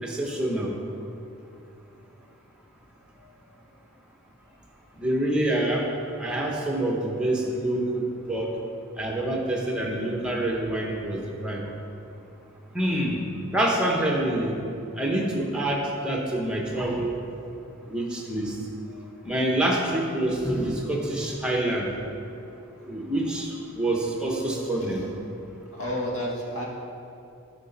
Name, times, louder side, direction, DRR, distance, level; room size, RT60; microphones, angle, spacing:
voice 1, 0.0-0.7 5.0-5.9 6.2-8.5 9.0-11.7 12.7-13.2 13.5-14.5 15.0-17.2 17.9-18.6 19.2-21.9 22.8-25.0, right 1 dB, 5° right, -1 dB, 1.0 m, -26 dB
voice 2, 18.9-19.2 24.8-25.0 25.7-26.7, left 1 dB, 75° left, -3 dB, 1.7 m, -33 dB
10.5 x 5.8 x 4.1 m, 2.7 s
head